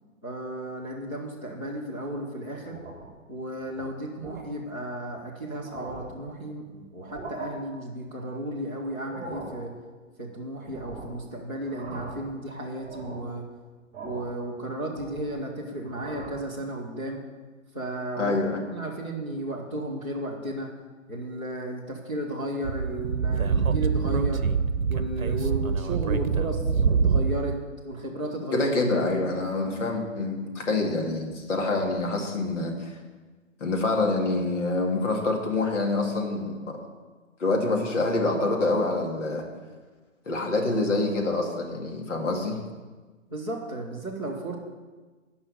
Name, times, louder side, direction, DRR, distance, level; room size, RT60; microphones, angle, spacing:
voice 1, 0.2-2.8 3.3-9.7 10.2-13.4 14.0-17.2 17.7-18.4 18.7-20.7 21.1-24.4 24.9-27.6 27.8-28.7 43.3-44.6, right 1 dB, 10° left, -8 dB, 0.4 m, -34 dB
sound 1, 2.6-3.2 3.6-3.8 4.2-4.5 5.1-5.2 5.5-6.2 6.9-7.5 8.9-9.6 10.7-11.2 11.6-12.3 12.7-13.3 13.9-14.4 14.7-15.4 15.8-16.4, right 2 dB, 15° right, 2.9 m, -41 dB
voice 2, 18.2-18.6 28.5-32.9 33.6-36.8 37.4-39.4 40.3-42.6, left 2 dB, 60° left, 1 dB, 2.3 m, -26 dB
Speech / Wind, 22.6-27.5, right 5 dB, 85° right, 0.7 m, -25 dB
10.5 x 5.6 x 8.3 m, 1.3 s
figure-of-eight pair, 140°, 40 cm